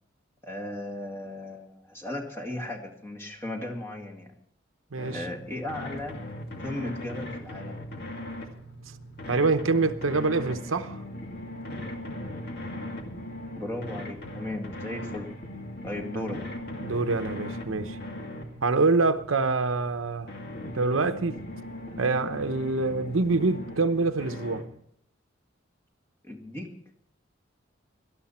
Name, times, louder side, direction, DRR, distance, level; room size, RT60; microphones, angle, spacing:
voice 1, 0.4-4.3 5.1-6.2 6.6-7.9 13.6-15.4 15.8-16.4 26.2-26.8, left 1 dB, 15° left, 2.1 m, -36 dB
voice 2, 4.9-5.2 9.3-11.0 16.1-16.2 16.8-18.0 18.6-20.3 20.7-21.4 22.0-24.7, right 3 dB, 90° right, 0.9 m, -25 dB
sound 1, 5.0-24.6, left 1 dB, 55° left, 2.2 m, -39 dB
18.0 x 12.5 x 4.4 m
head